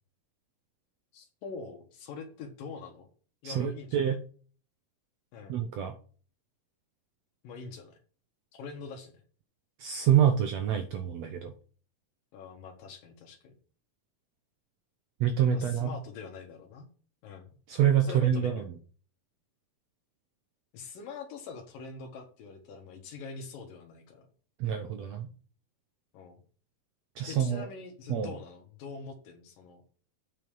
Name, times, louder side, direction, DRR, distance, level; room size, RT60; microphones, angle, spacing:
voice 1, 1.1-3.1 3.4-4.0 5.3-5.6 7.4-8.0 8.5-9.2 12.3-13.5 15.5-16.9 17.2-17.5 18.0-18.6 20.7-24.3 26.1-26.4 27.3-29.8, left 4 dB, 80° left, 2 dB, 3.0 m, -44 dB
voice 2, 3.4-4.2 5.5-5.9 9.8-11.5 15.2-15.9 17.7-18.6 24.6-25.3 27.2-27.7 28.1-28.3, right 9 dB, 70° right, 6 dB, 1.7 m, -26 dB
7.8 x 5.5 x 7.0 m, 0.41 s
omnidirectional pair, 3.9 m